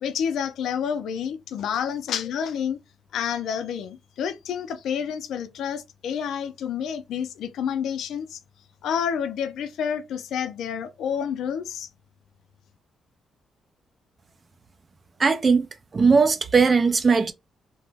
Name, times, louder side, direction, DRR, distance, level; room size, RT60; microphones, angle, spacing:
voice 1, 0.0-2.8 3.1-8.4 8.8-11.9, left 8 dB, 80° left, 0.4 m, -29 dB
voice 2, 15.2-15.7 15.9-17.3, right 5 dB, 30° right, 0.3 m, -18 dB
2.9 x 2.1 x 3.3 m
cardioid pair, 145°, 0 cm